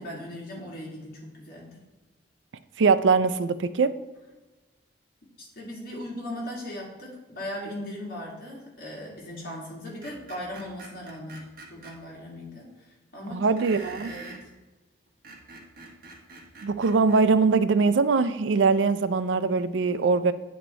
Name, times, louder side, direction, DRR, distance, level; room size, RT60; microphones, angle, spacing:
voice 1, 0.0-1.7 5.4-12.7 13.1-13.6 13.8-14.4, left 1 dB, 55° left, -3 dB, 2.3 m, -38 dB
voice 2, 2.8-3.9 13.3-14.1 16.6-20.3, right 4 dB, 90° right, 13 dB, 0.4 m, -22 dB
Screech, 10.0-11.9 13.6-14.4 15.1-17.2, right 2 dB, 50° right, 1.5 m, -45 dB
9.2 x 4.4 x 4.4 m, 1.2 s
head